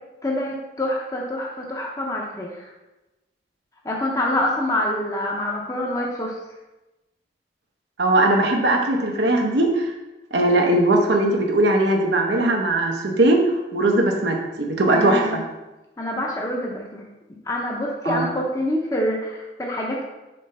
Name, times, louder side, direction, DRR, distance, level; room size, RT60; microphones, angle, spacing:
voice 1, 0.2-2.7 3.8-6.3 14.9-15.4 16.0-17.0 17.5-20.0, left 1 dB, 20° left, -1 dB, 0.7 m, -26 dB
voice 2, 8.0-9.9 10.3-15.4 18.0-18.3, right 1 dB, 80° right, 2 dB, 0.8 m, -19 dB
5.3 x 3.2 x 5.4 m, 1.0 s
head